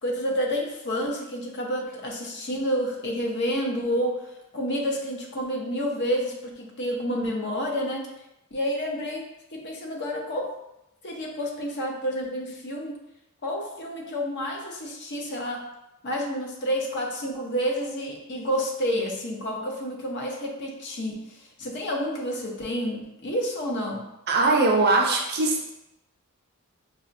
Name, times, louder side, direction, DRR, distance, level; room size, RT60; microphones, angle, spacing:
voice 1, 0.0-8.1 8.5-10.5 11.0-13.0 13.4-15.6 16.0-24.0, equal, 50° left, 0 dB, 0.7 m, -29 dB
voice 2, 24.3-25.6, right 3 dB, 45° right, 1 dB, 0.5 m, -21 dB
4.9 x 2.2 x 2.5 m, 0.88 s
head